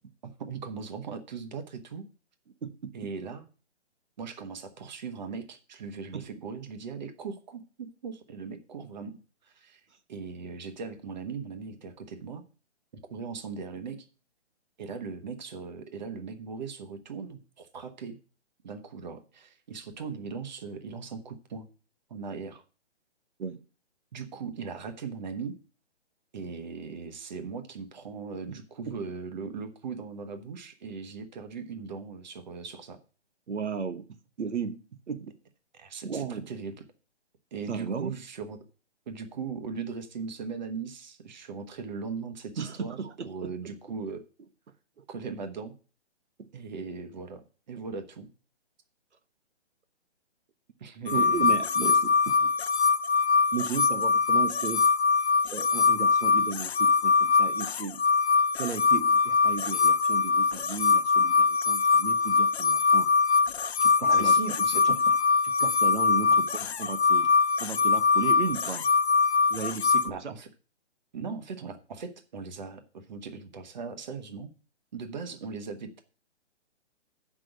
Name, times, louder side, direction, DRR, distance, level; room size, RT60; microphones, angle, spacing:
voice 1, 0.4-2.1 2.9-3.5 4.2-9.8 10.1-12.4 13.1-14.0 14.8-18.2 18.6-21.7 22.1-22.6 24.1-25.5 26.3-33.0 35.7-36.8 37.5-38.6 39.1-44.2 45.1-45.7 46.5-47.4 47.7-48.3 50.8-51.5 64.1-64.9 70.0-70.5 71.1-74.5 74.9-76.0, right 5 dB, 40° right, 8 dB, 1.3 m, -39 dB
voice 2, 2.6-2.9 6.1-6.3 23.4-23.6 28.5-28.6 28.9-29.0 33.5-35.3 36.0-36.5 37.7-38.1 42.6-43.8 45.0-45.1 46.4-46.5 51.1-52.5 53.5-54.9 55.5-58.0 58.6-63.1 63.8-65.0 65.4-67.3 67.6-68.9 69.5-70.3, right 6 dB, 80° right, 10 dB, 1.2 m, -35 dB
sound 1, 51.1-70.1, left 4 dB, 65° left, 0.9 m, -23 dB
7.6 x 6.1 x 7.9 m, 0.36 s
hypercardioid pair, 170°, 34 cm